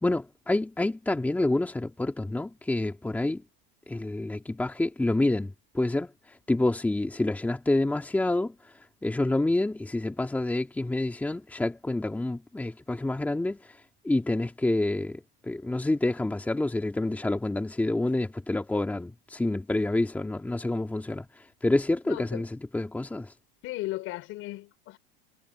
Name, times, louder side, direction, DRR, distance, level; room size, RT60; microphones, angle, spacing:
voice 1, 0.0-3.4 3.9-23.3, left 2 dB, 5° left, 2.4 m, -28 dB
voice 2, 22.1-22.4 23.6-25.0, left 18 dB, 45° left, 5.4 m, -36 dB
supercardioid pair, 145°, 30 cm